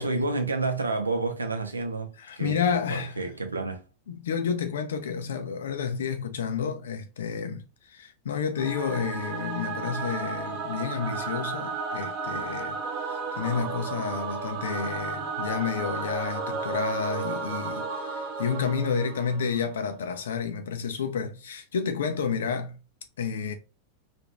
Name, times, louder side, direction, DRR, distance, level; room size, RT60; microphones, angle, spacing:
voice 1, 0.0-3.8, right 3 dB, 80° right, 0.6 m, -30 dB
voice 2, 2.2-3.2 4.1-12.8 13.0-22.8 23.2-23.5, left 6 dB, 65° left, 0.6 m, -30 dB
Singing / Musical instrument, 8.6-19.8, right 4 dB, 40° right, 0.7 m, -33 dB
2.9 x 2.5 x 3.4 m
figure-of-eight pair, 90°, 0 cm